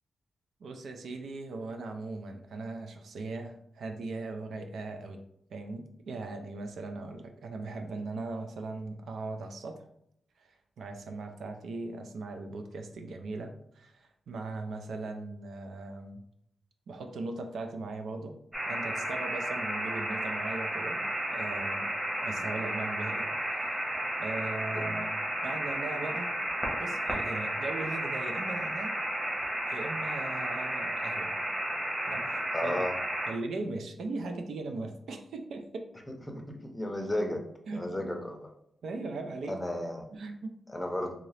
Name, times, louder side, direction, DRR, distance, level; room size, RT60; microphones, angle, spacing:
voice 1, 0.6-5.2 5.5-9.8 10.4-16.2 16.9-18.3 18.7-21.0 21.3-21.9 22.2-23.3 23.5-23.6 24.2-26.3 26.8-29.0 29.7-31.4 32.1-32.9 33.3-35.9 37.7-38.1 38.8-39.6 40.1-40.6, right 3 dB, 80° right, 5 dB, 0.5 m, -39 dB
sound 1, 18.5-33.3, right 1 dB, 25° right, 1.3 m, -33 dB
voice 2, 32.5-33.0 36.3-38.5 39.5-40.0 40.7-41.1, left 1 dB, 10° left, 3 dB, 0.6 m, -34 dB
3.6 x 2.8 x 3.2 m, 0.73 s
wide cardioid pair, 105°, 0 cm